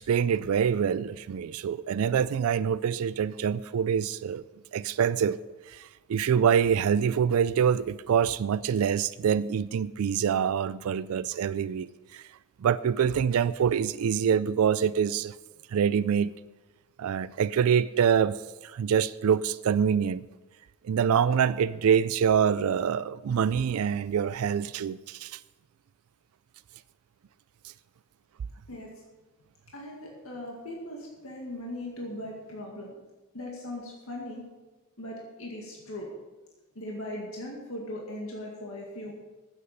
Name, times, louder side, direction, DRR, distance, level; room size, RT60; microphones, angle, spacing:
voice 1, 0.0-4.4 4.7-5.4 5.7-12.2 12.6-15.3 15.7-16.3 17.0-18.4 18.6-20.3 20.8-25.4, right 7 dB, 80° right, 0.4 m, -25 dB
voice 2, 29.7-33.0 33.3-34.5 35.0-36.1 36.8-39.1, left 1 dB, 70° left, 2.1 m, -39 dB
9.7 x 8.0 x 6.6 m
head